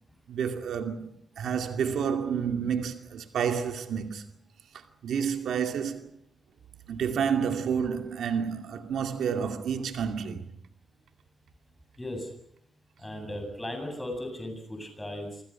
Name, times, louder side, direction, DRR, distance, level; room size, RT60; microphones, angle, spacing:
voice 1, 0.3-4.2 5.0-6.1 6.9-10.5, right 7 dB, 80° right, 2.4 m, -29 dB
voice 2, 12.0-12.3 13.0-15.4, left 1 dB, 10° left, 7.9 m, -36 dB
28.0 x 26.0 x 6.0 m
wide cardioid pair, 175°, 0 cm